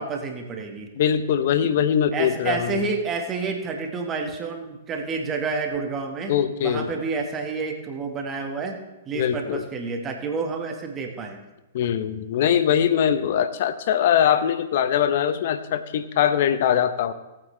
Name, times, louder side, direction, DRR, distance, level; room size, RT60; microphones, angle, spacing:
voice 1, 0.0-0.9 2.1-6.3 6.6-8.8 9.1-11.4, right 4 dB, 25° right, 3 dB, 1.6 m, -29 dB
voice 2, 1.0-2.9 6.3-6.9 9.1-9.6 11.7-17.1, left 9 dB, 55° left, 11 dB, 0.9 m, -22 dB
18.0 x 8.8 x 3.3 m, 1.0 s
hypercardioid pair, 120°, 0 cm